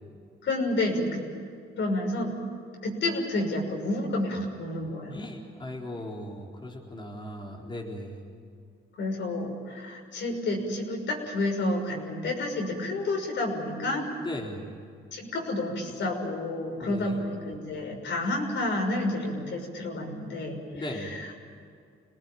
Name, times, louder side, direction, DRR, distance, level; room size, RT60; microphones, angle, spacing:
voice 1, 0.4-1.2 1.8-2.3 2.8-5.2 9.0-14.1 15.1-21.3, left 2 dB, 65° left, 1 dB, 6.3 m, -30 dB
voice 2, 5.1-8.3 14.2-14.7 16.7-17.2 20.7-21.1, left 1 dB, 25° left, -2 dB, 4.1 m, -38 dB
27.0 x 19.0 x 9.1 m, 2.3 s
cardioid pair, 90°, 20 cm